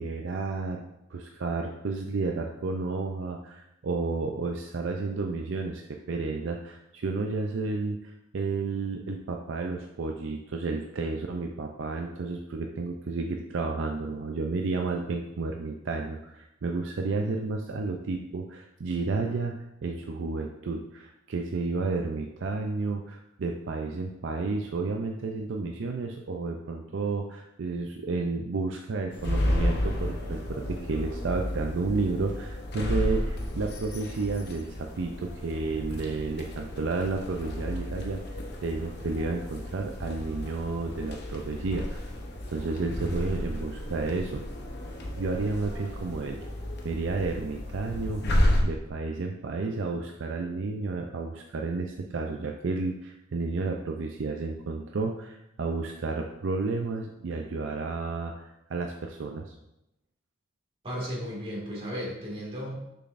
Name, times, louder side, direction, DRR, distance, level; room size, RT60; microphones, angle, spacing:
voice 1, 0.0-19.5 19.8-38.2 38.6-42.1 42.5-44.5 45.2-46.4 46.8-59.5, right 3 dB, 65° right, 3 dB, 0.4 m, -31 dB
sound 1, 29.1-48.6, left 1 dB, 55° left, 0.8 m, -32 dB
voice 2, 60.8-62.8, equal, 30° right, -4 dB, 2.0 m, -34 dB
6.6 x 5.9 x 2.5 m, 0.88 s
head